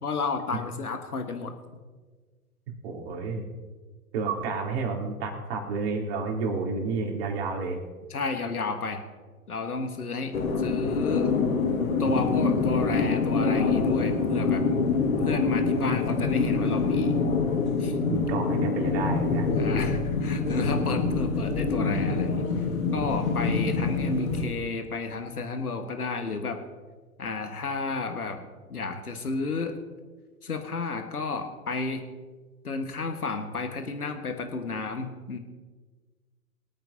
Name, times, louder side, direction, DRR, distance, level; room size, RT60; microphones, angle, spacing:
voice 1, 0.0-1.5 8.1-9.0 9.5-11.3 12.0-14.6 15.2-17.2 17.8-18.0 19.6-22.5 22.9-26.6 27.2-29.8 30.4-32.1 32.6-35.4, left 4 dB, 80° left, 6 dB, 1.7 m, -31 dB
voice 2, 2.8-3.4 4.1-7.8 17.9-19.5, right 4 dB, 45° right, -1 dB, 3.6 m, -30 dB
sound 1, 10.3-24.5, left 4 dB, 65° left, 2.1 m, -25 dB
24.0 x 9.2 x 2.9 m, 1.4 s
figure-of-eight pair, 115°, 44 cm